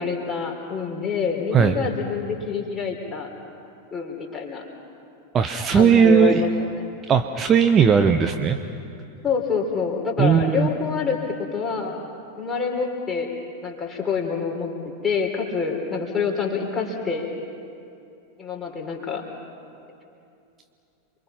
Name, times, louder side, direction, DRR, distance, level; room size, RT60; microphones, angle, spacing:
voice 1, 0.0-3.3 3.9-4.6 5.7-6.5 6.8-6.9 9.2-12.0 12.4-13.3 13.6-17.3 18.4-19.3, left 5 dB, 15° left, 0 dB, 3.9 m, -26 dB
voice 2, 5.3-6.4 7.1-8.6 10.2-10.7, right 7 dB, 25° right, 7 dB, 0.9 m, -17 dB
28.5 x 23.5 x 5.8 m, 2.6 s
figure-of-eight pair, 90°, 0 cm